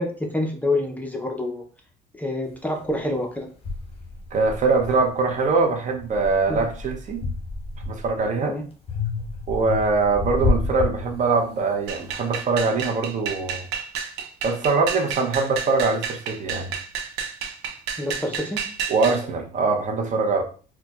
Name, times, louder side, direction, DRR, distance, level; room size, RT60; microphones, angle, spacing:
voice 1, 0.0-1.6 2.1-3.5 6.5-6.6 8.4-8.6 18.0-18.6, left 1 dB, 10° left, 0.5 m, -27 dB
sound 1, 2.8-2.9 3.6-5.5 5.9-8.3 8.9-11.6, left 3 dB, 35° left, 1.0 m, -29 dB
voice 2, 4.3-7.2 7.9-8.6 9.5-13.6 14.4-16.7 18.9-20.4, right 4 dB, 45° right, 0.6 m, -23 dB
sound 2, 11.9-19.2, right 7 dB, 90° right, 0.5 m, -31 dB
4.3 x 2.1 x 2.2 m
cardioid pair, 110°, 17 cm